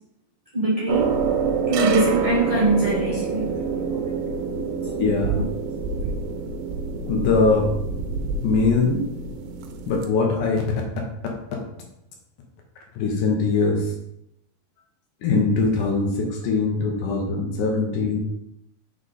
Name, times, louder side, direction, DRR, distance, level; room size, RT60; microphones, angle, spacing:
voice 1, 0.5-1.1 1.7-3.5, right 2 dB, 65° right, -9 dB, 0.3 m, -22 dB
sound 1, 0.9-10.1, right 5 dB, 80° right, 2.5 m, -27 dB
voice 2, 3.5-5.4 7.1-7.7 8.4-9.0 9.9-10.6 13.0-13.8 15.2-18.2, left 4 dB, 65° left, 0 dB, 2.3 m, -22 dB
6.3 x 4.0 x 4.0 m, 0.81 s
omnidirectional pair, 4.4 m